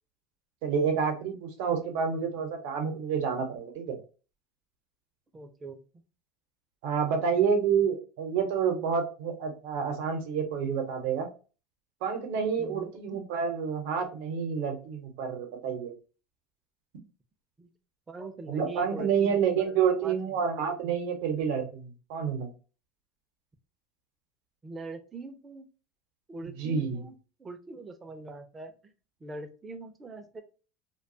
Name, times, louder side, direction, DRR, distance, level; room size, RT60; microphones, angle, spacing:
voice 1, 0.6-4.0 6.8-11.3 12.0-15.9 18.5-22.5 26.6-27.0, right 6 dB, 70° right, 4 dB, 0.7 m, -29 dB
voice 2, 5.3-5.8 12.6-13.0 17.6-17.7 18.1-20.4 24.6-25.6 26.3-28.9 29.2-30.4, right 3 dB, 20° right, 6 dB, 0.4 m, -43 dB
2.3 x 2.2 x 2.5 m, 0.35 s
supercardioid pair, 130°, 0 cm